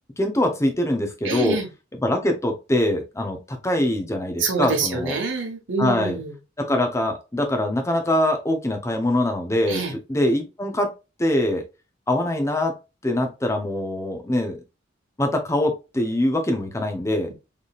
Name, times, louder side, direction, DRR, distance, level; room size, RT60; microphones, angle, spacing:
voice 1, 0.2-1.6 2.0-5.1 5.8-6.2 6.6-9.8 10.1-10.9 11.2-11.6 12.1-12.7 13.0-14.6 15.2-17.3, left 1 dB, 15° left, 4 dB, 0.7 m, -23 dB
voice 2, 1.2-1.7 4.4-6.3 9.7-9.9, right 4 dB, 75° right, 3 dB, 1.2 m, -26 dB
4.0 x 3.4 x 2.4 m, 0.28 s
head